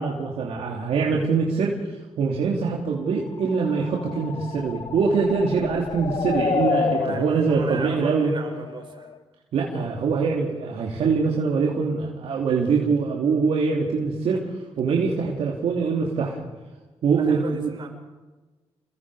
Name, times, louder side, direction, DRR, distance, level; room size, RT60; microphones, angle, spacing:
voice 1, 0.0-1.7 2.2-8.3 9.5-14.4 14.8-16.4 17.0-17.7, right 5 dB, 75° right, -2 dB, 3.0 m, -23 dB
sound 1, 3.4-9.2, left 5 dB, 45° left, 0.9 m, -30 dB
voice 2, 6.9-9.1 17.1-17.9, right 4 dB, 55° right, 2 dB, 5.8 m, -36 dB
29.0 x 22.0 x 5.0 m, 1.2 s
cardioid pair, 70°, 10 cm